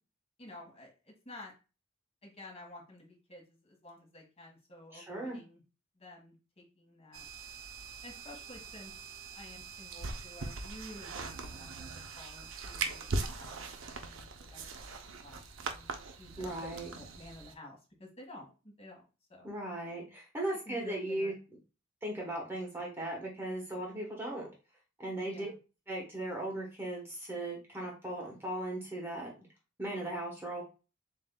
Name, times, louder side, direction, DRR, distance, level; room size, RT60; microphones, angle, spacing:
voice 1, 0.4-1.5 2.2-5.6 5.9-7.3 8.0-8.9 9.3-15.9 16.2-19.0 19.3-19.5 20.6-21.3 25.2-25.6, left 1 dB, 30° left, -1 dB, 1.5 m, -52 dB
voice 2, 4.9-5.4 16.4-16.9 19.4-21.3 22.0-24.5 25.0-25.5 25.9-29.5 29.8-30.6, right 1 dB, 10° right, -2 dB, 1.1 m, -37 dB
sound 1, 7.1-17.5, right 3 dB, 75° right, 0.6 m, -41 dB
7.4 x 2.6 x 2.2 m, 0.31 s
head